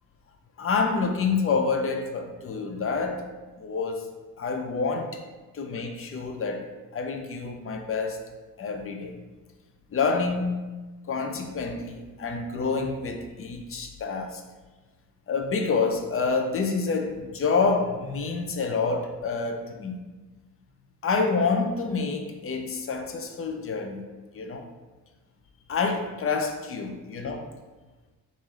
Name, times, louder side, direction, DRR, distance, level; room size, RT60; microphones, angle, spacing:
voice 1, 0.6-3.2 3.6-4.0 4.4-5.2 5.5-8.2 8.6-9.1 9.9-10.5 11.1-14.4 15.3-20.0 21.0-24.0 24.3-24.6 25.7-27.5, left 4 dB, 40° left, 4 dB, 0.5 m, -28 dB
3.2 x 2.7 x 3.6 m, 1.2 s
cardioid pair, 75°, 34 cm